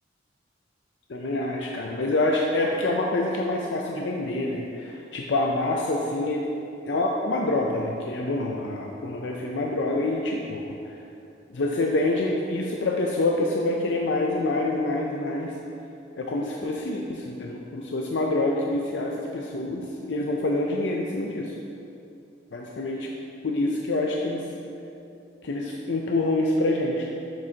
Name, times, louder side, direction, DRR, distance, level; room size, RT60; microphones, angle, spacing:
voice 1, 1.1-6.5 6.9-10.6 11.5-15.6 16.2-21.6 22.5-23.1 23.4-24.5 25.4-27.1, left 2 dB, 80° left, 0 dB, 0.5 m, -26 dB
7.6 x 7.4 x 2.8 m, 2.7 s
head